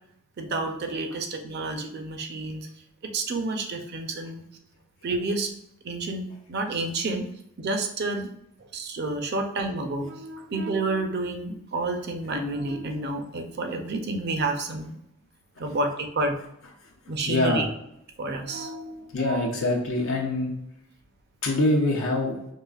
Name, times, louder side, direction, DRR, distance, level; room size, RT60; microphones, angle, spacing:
voice 1, 0.4-2.7 3.1-4.4 5.0-5.5 5.8-7.3 7.6-8.3 8.7-14.9 15.6-16.4 17.1-17.7 18.2-19.5, right 2 dB, 50° right, 5 dB, 0.5 m, -30 dB
voice 2, 17.3-17.6 19.1-20.5 21.4-22.4, left 2 dB, 65° left, -2 dB, 0.6 m, -24 dB
4.7 x 2.4 x 2.4 m, 0.77 s
head